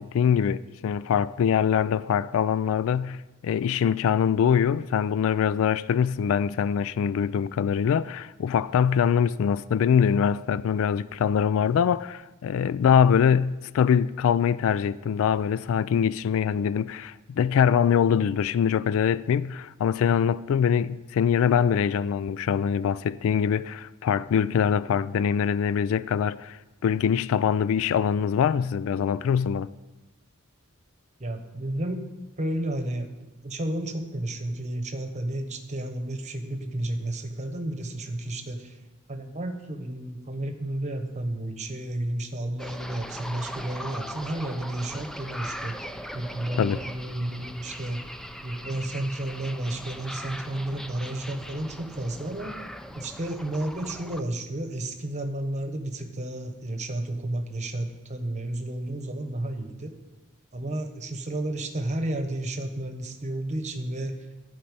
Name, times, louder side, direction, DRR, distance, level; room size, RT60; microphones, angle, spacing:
voice 1, 0.0-29.7 46.6-46.8, left 7 dB, 65° left, 0.3 m, -23 dB
voice 2, 31.2-32.0 32.4-38.8 39.1-48.0 48.4-52.6 52.9-59.9 60.5-64.2, right 1 dB, 35° right, 1.2 m, -32 dB
sound 1, 42.6-54.2, equal, ahead, 0.5 m, -39 dB
11.5 x 5.5 x 8.7 m
head